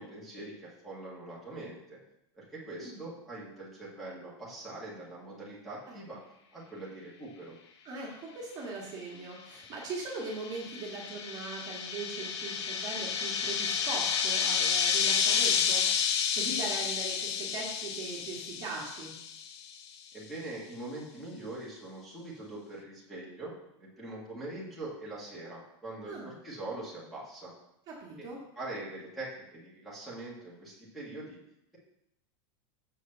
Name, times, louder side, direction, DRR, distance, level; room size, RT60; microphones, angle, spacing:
voice 1, 0.0-2.0 2.4-6.2 6.5-7.6 20.1-27.5 28.2-28.3 28.6-31.4, right 2 dB, ahead, -8 dB, 1.8 m, -43 dB
voice 2, 7.8-15.9 16.3-19.1 26.1-26.3 27.9-28.4, right 3 dB, 25° right, -3 dB, 1.7 m, -40 dB
sound 1, 9.8-19.6, left 7 dB, 75° left, 0.9 m, -30 dB
6.8 x 4.9 x 6.7 m, 0.81 s
supercardioid pair, 170°, 14 cm